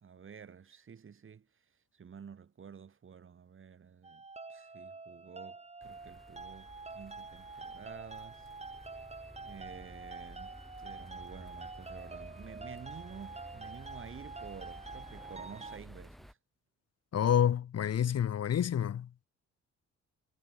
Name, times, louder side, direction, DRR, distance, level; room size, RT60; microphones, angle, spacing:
voice 1, 0.0-1.6 1.9-4.2 4.5-8.5 9.4-16.4, right 7 dB, 45° right, 3.1 m, -51 dB
sound 1, 4.0-15.8, right 3 dB, 20° right, 2.1 m, -47 dB
sound 2, 5.8-16.3, equal, ahead, 6.9 m, -53 dB
voice 2, 17.1-19.1, left 9 dB, 55° left, 2.0 m, -28 dB
cardioid pair, 90°, 30 cm